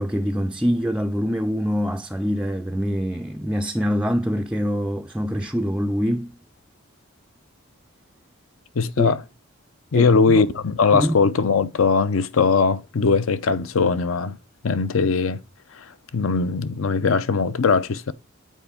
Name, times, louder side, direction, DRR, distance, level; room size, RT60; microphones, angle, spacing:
voice 1, 0.0-6.4 9.0-9.1 9.9-10.5 10.9-11.2, equal, 5° right, 0.3 m, -24 dB
voice 2, 8.8-9.2 9.9-14.4 14.6-15.4 15.8-15.9 16.1-18.1, left 4 dB, 75° left, 0.6 m, -20 dB
8.3 x 4.6 x 3.4 m
head